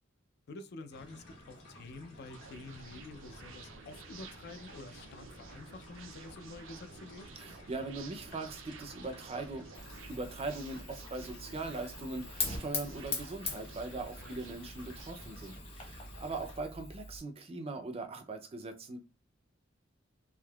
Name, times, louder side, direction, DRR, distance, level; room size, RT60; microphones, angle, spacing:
voice 1, 0.5-7.4 14.2-14.4, left 3 dB, 55° left, 0.4 m, -49 dB
sound 1, 0.9-16.6, left 1 dB, 75° left, 1.5 m, -54 dB
sound 2, 2.3-15.6, right 5 dB, 85° right, 0.5 m, -53 dB
voice 2, 7.4-9.7 10.1-19.0, right 3 dB, 30° right, 0.4 m, -40 dB
Fire, 9.7-17.2, left 3 dB, 30° left, 1.0 m, -42 dB
3.5 x 2.6 x 2.3 m
head